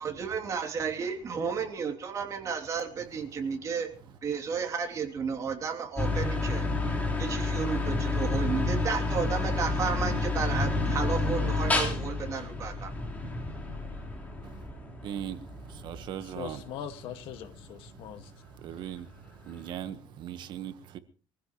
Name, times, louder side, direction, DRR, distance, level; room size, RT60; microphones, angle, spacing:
voice 1, 0.0-6.7 7.2-12.9, right 6 dB, 35° right, 3.0 m, -33 dB
sound 1, 6.0-18.3, left 3 dB, 15° left, 4.1 m, -30 dB
voice 2, 15.0-16.6 18.6-21.0, right 10 dB, 50° right, 1.4 m, -39 dB
voice 3, 16.2-18.3, left 10 dB, 70° left, 1.9 m, -41 dB
24.5 x 15.5 x 3.2 m
cardioid pair, 150°, 10 cm